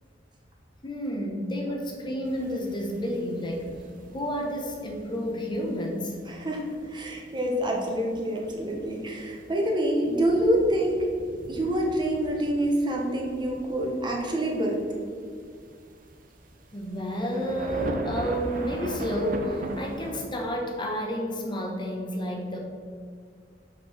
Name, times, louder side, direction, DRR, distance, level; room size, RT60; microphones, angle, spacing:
voice 1, 0.8-3.7 4.1-6.2 16.7-22.6, equal, 25° left, 1 dB, 1.1 m, -30 dB
sound 1, 2.2-20.3, right 1 dB, 50° right, 0.8 m, -40 dB
voice 2, 6.3-11.1 11.5-14.8, right 1 dB, 25° right, 0 dB, 1.2 m, -26 dB
5.9 x 5.4 x 6.2 m, 2.1 s
head